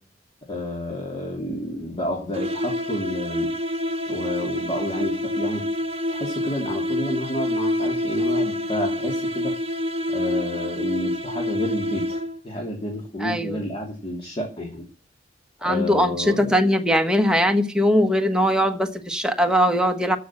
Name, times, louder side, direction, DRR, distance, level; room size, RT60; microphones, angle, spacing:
voice 1, 0.5-3.5 4.1-5.6 6.1-9.5 10.1-12.2 12.4-14.8 15.6-16.5, left 1 dB, 30° left, 3.3 m, -30 dB
sound 1, 2.3-12.5, left 1 dB, 35° right, 1.4 m, -27 dB
voice 2, 13.2-13.6 15.6-20.2, equal, 5° right, 1.3 m, -20 dB
15.0 x 6.3 x 7.7 m
head